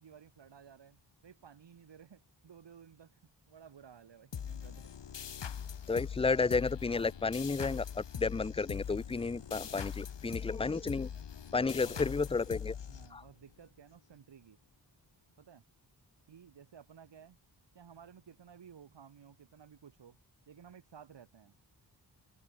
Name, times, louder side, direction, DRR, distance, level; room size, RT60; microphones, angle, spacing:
voice 1, 0.0-4.9 11.7-12.1 12.9-14.6 15.4-15.6 16.3-17.4 17.7-20.2 20.5-21.6, right 7 dB, 85° right, 2.6 m, -56 dB
sound 1, 4.3-13.5, left 8 dB, 90° left, 2.4 m, -42 dB
voice 2, 5.9-11.1 11.5-12.8 13.1-13.2, left 4 dB, 15° left, 0.4 m, -32 dB
wide cardioid pair, 135°, 42 cm